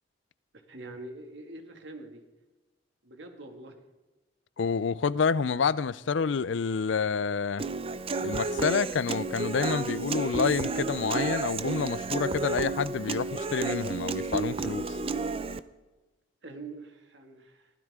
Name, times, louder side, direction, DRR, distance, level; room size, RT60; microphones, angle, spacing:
voice 1, 0.7-2.2 3.0-3.8 16.4-17.7, right 2 dB, 70° right, 2.2 m, -44 dB
voice 2, 4.6-7.6 8.2-15.0, left 5 dB, 85° left, 0.5 m, -28 dB
Human voice / Acoustic guitar, 7.6-15.6, right 3 dB, 30° right, 0.6 m, -31 dB
22.5 x 15.5 x 3.7 m
head